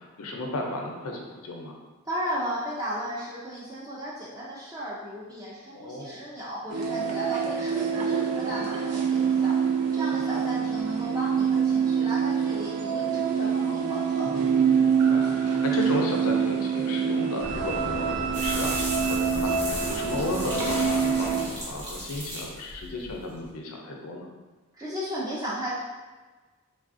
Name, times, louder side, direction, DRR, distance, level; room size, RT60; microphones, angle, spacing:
voice 1, 0.0-1.7 5.7-6.2 10.1-10.2 14.9-24.3, left 2 dB, 85° left, 1 dB, 0.5 m, -34 dB
voice 2, 2.0-9.5 9.9-14.3 24.7-25.7, equal, 15° right, -7 dB, 0.4 m, -35 dB
sound 1, 6.7-21.5, right 6 dB, 90° right, 0.4 m, -25 dB
sound 2, 17.4-22.4, equal, 35° right, 0.9 m, -38 dB
sound 3, 18.3-23.5, right 1 dB, 55° right, 1.1 m, -36 dB
3.2 x 2.4 x 2.4 m, 1.3 s
head